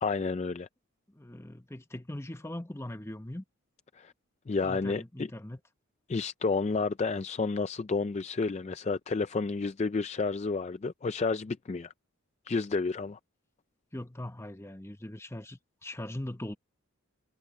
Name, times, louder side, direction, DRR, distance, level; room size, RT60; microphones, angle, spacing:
voice 1, 0.0-0.7 3.9-4.1 4.5-5.3 6.1-11.9 12.5-13.2, left 4 dB, 30° left, 0.3 m, -30 dB
voice 2, 1.1-3.4 4.6-5.6 13.9-16.6, left 1 dB, 10° left, 0.9 m, -40 dB
head